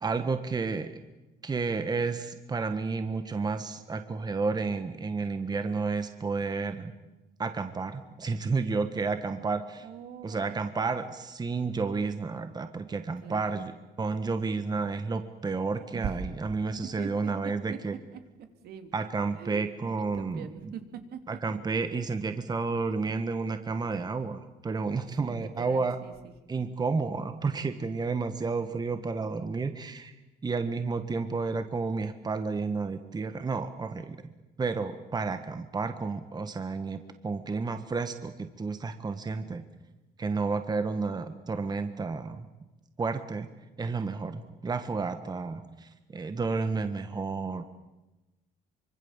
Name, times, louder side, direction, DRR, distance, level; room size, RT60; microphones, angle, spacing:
voice 1, 0.0-0.9 1.4-6.9 7.4-9.9 10.2-13.7 14.0-17.9 18.9-20.5 21.3-26.0 26.5-30.1 30.4-34.2 34.6-39.6 40.2-42.5 43.0-43.5 43.8-47.6, right 4 dB, 25° right, 9 dB, 1.5 m, -31 dB
voice 2, 9.8-10.5 13.2-13.6 15.9-16.2 17.0-17.1 17.4-17.8 18.1-18.2 18.6-18.9 19.4-19.6 19.9-20.8 21.1-21.2 21.9-22.0 24.8-26.7, right 8 dB, 70° right, 7 dB, 2.9 m, -42 dB
25.0 x 24.5 x 7.4 m, 1.1 s
cardioid pair, 110°, 17 cm